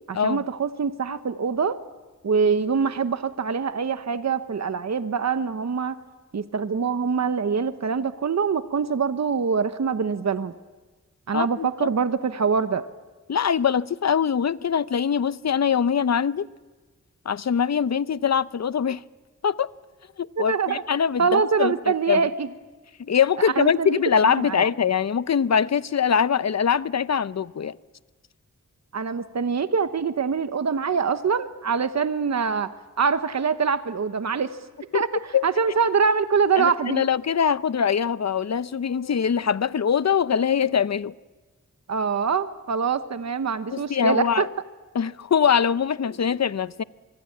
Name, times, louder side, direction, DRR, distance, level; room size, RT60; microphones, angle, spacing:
voice 1, 0.1-1.8 2.2-6.0 6.3-10.5 11.3-12.9 20.4-20.8 21.2-22.5 23.4-24.6 28.9-32.7 33.0-34.6 34.9-35.1 35.4-37.1 41.9-44.5, right 5 dB, 60° right, 1.0 m, -24 dB
voice 2, 11.3-11.9 13.3-16.5 17.3-19.0 19.4-19.7 20.2-21.7 22.1-22.2 23.0-27.7 34.9-35.0 35.3-35.5 36.6-41.1 43.7-44.5 44.9-46.8, left 7 dB, 60° left, 0.7 m, -23 dB
25.0 x 23.5 x 8.6 m
cardioid pair, 55°, 30 cm